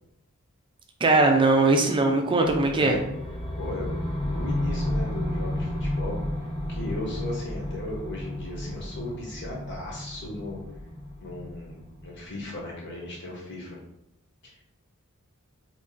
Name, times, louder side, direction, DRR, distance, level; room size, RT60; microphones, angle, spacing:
voice 1, 1.0-3.0, right 2 dB, 20° right, 3 dB, 0.4 m, -20 dB
sound 1, 2.4-12.5, left 1 dB, 20° left, 0.6 m, -32 dB
voice 2, 3.6-6.2 6.7-10.6 11.2-13.8, left 1 dB, 55° left, -2 dB, 1.1 m, -36 dB
2.9 x 2.7 x 3.7 m, 0.83 s
head